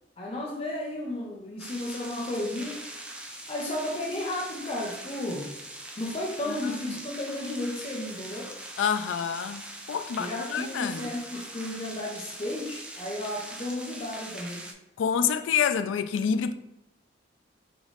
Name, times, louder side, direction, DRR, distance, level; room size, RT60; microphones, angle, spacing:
voice 1, 0.2-2.8 3.5-5.5 6.0-8.5 10.2-14.7, left 1 dB, 30° left, 0.6 m, -33 dB
sound 1, 1.6-14.7, right 1 dB, 5° right, 0.4 m, -42 dB
voice 2, 8.8-9.6 9.9-11.1 15.0-16.5, left 7 dB, 80° left, 0.3 m, -27 dB
3.4 x 3.0 x 3.8 m
head